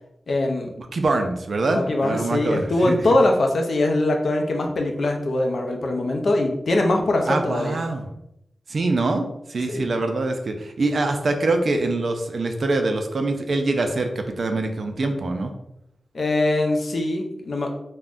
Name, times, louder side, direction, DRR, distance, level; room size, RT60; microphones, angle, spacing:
voice 1, 0.3-0.7 1.7-7.8 9.7-9.9 16.1-17.7, left 2 dB, 55° left, 2 dB, 0.4 m, -22 dB
voice 2, 0.8-3.1 7.3-8.1 8.7-15.5, right 2 dB, 50° right, 5 dB, 0.3 m, -24 dB
3.5 x 2.1 x 2.4 m, 0.81 s
wide cardioid pair, 165°, 0 cm